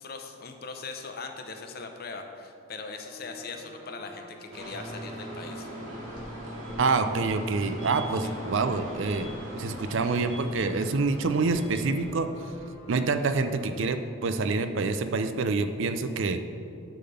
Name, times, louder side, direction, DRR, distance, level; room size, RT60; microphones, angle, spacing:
voice 1, 0.0-5.7 8.2-8.3, left 4 dB, 45° left, 5 dB, 0.7 m, -40 dB
sound 1, 3.0-14.0, equal, 20° right, 1.7 m, -49 dB
sound 2, 4.5-12.2, equal, 90° right, 2.2 m, -40 dB
sound 3, 5.3-13.6, equal, 85° left, 1.4 m, -48 dB
voice 2, 6.8-12.3 12.9-16.4, right 3 dB, 60° right, 9 dB, 0.5 m, -27 dB
10.0 x 3.8 x 6.9 m, 2.5 s
head